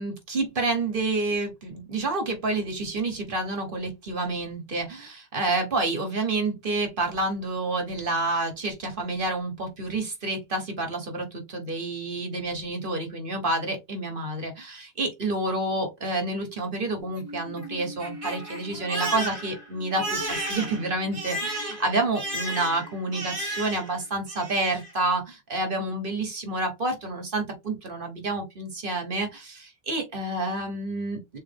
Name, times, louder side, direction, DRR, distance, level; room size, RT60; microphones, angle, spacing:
voice 1, 0.0-31.4, right 2 dB, 60° right, 1.4 m, -29 dB
Crying sobbing, 17.0-24.0 24.3-24.9, right 1 dB, 35° right, 1.5 m, -34 dB
3.9 x 3.2 x 3.4 m
omnidirectional pair, 1.0 m